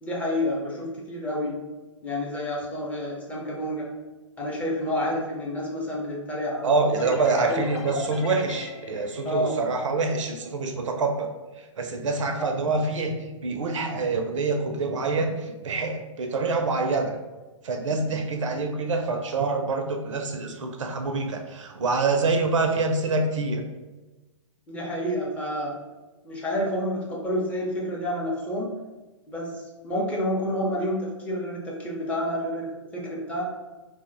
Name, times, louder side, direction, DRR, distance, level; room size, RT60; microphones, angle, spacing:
voice 1, 0.0-1.6 2.0-3.9 4.4-6.9 7.4-7.6 9.2-9.5 12.3-12.5 24.7-25.8 26.2-28.7 29.3-33.4, equal, 10° left, -4 dB, 0.6 m, -29 dB
voice 2, 6.6-11.3 11.6-13.1 13.4-17.2 17.6-23.6, right 3 dB, 70° right, 4 dB, 0.5 m, -26 dB
sound 1, 6.9-10.5, left 4 dB, 55° left, 0.5 m, -37 dB
2.4 x 2.1 x 3.7 m, 1.2 s
hypercardioid pair, 130°, 17 cm